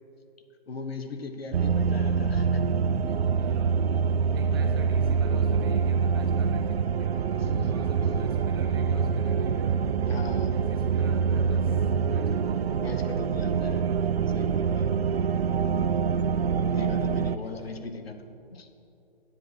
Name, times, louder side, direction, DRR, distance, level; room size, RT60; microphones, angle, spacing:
voice 1, 0.7-2.6 3.1-3.2 4.5-4.6 7.4-8.1 10.0-10.7 12.8-13.9 14.3-14.9 16.7-18.7, left 3 dB, 80° left, 8 dB, 1.0 m, -39 dB
sound 1, 1.5-17.4, right 6 dB, 90° right, 0.5 m, -25 dB
voice 2, 3.4-3.9 4.3-7.2 7.6-9.9 10.4-12.7 17.4-18.0, right 2 dB, 25° right, 3 dB, 0.6 m, -43 dB
9.8 x 7.6 x 4.7 m, 2.9 s
hypercardioid pair, 150°, 30 cm